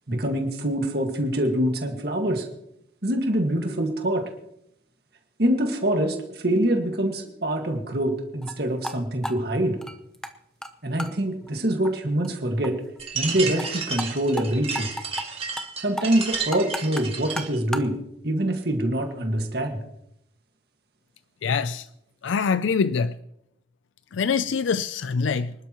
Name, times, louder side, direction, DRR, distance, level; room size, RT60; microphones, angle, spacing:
voice 1, 0.1-2.5 3.0-4.3 5.4-9.8 10.8-12.8 13.1-14.9 15.8-19.8, right 1 dB, 55° right, 1.8 m, -25 dB
sound 1, 8.4-8.6 8.8-9.0 9.2-10.3 10.6-10.7 11.0-11.1 11.5-11.6 11.8-11.9 12.2-12.3 12.6-12.7 13.0-13.1 13.4-13.7 14.0-14.1 14.4-14.5 14.7-15.3 15.6-15.7 16.0-17.9, left 1 dB, 5° left, 0.6 m, -33 dB
sound 2, 13.0-17.6, right 5 dB, 30° right, 1.8 m, -32 dB
voice 2, 21.4-21.9 22.2-23.2 24.1-25.5, left 5 dB, 85° left, 0.4 m, -24 dB
25.5 x 12.0 x 3.0 m
head